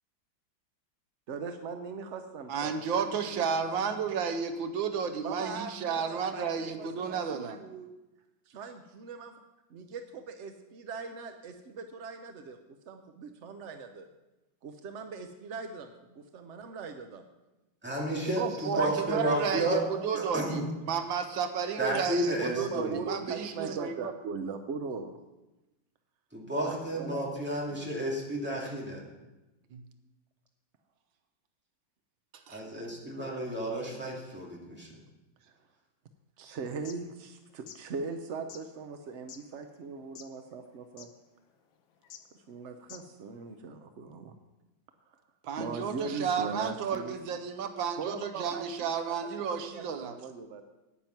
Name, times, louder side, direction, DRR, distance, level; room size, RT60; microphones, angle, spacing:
voice 1, 1.3-3.4 4.0-4.1 5.2-7.9 8.5-9.3 9.7-12.6 12.9-14.1 14.6-17.2 18.3-18.9 19.2-19.4 19.7-20.5 22.5-25.2 26.6-27.2 27.7-27.9 35.4-35.5 36.4-41.1 42.5-44.4 45.1-45.2 45.6-47.4 48.0-49.3 49.7-50.6, right 5 dB, 65° right, 6 dB, 0.7 m, -40 dB
voice 2, 2.5-7.6 18.4-20.6 20.9-24.1 29.7-29.8 32.5-32.6 45.4-50.2, right 6 dB, 80° right, 8 dB, 1.6 m, -32 dB
voice 3, 17.8-19.8 20.2-20.7 21.8-23.0 26.3-29.0 32.5-34.9, right 1 dB, 5° right, -3 dB, 2.2 m, -32 dB
sound 1, 36.7-37.0 37.5-37.8 38.5-38.6 39.3-39.4 40.0-40.4 40.7-40.8 41.0-41.1 42.0-42.2 42.8-43.2, left 9 dB, 85° left, 1.6 m, -47 dB
9.8 x 9.2 x 5.9 m, 1.0 s
omnidirectional pair, 2.1 m